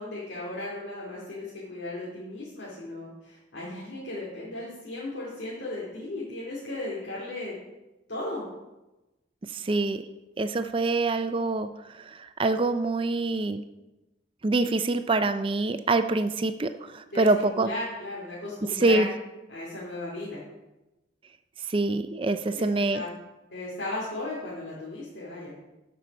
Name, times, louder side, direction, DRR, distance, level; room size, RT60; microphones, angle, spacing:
voice 1, 0.0-7.5 8.1-8.4 17.1-19.1 19.5-20.4 22.5-22.6 22.9-23.1 23.5-25.5, left 2 dB, 75° left, -7 dB, 2.6 m, -36 dB
voice 2, 9.5-10.0 10.4-13.6 14.4-17.7 18.8-19.1 21.6-23.0, right 2 dB, 30° right, 10 dB, 0.4 m, -25 dB
13.0 x 5.5 x 5.3 m, 1.0 s
head